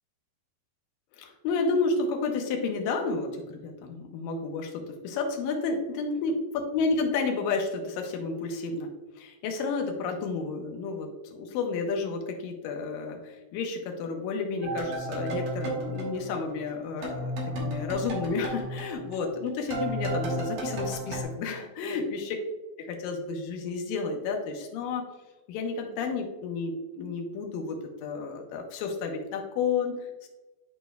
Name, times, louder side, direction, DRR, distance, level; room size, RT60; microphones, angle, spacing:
voice 1, 1.2-17.3 17.6-22.4 22.8-25.1 25.5-27.8 28.0-30.3, left 4 dB, 80° left, 2 dB, 2.1 m, -31 dB
sound 1, 14.6-16.8 17.0-21.2, right 1 dB, 70° right, 2.0 m, -33 dB
10.0 x 4.2 x 2.3 m, 1.1 s
omnidirectional pair, 4.8 m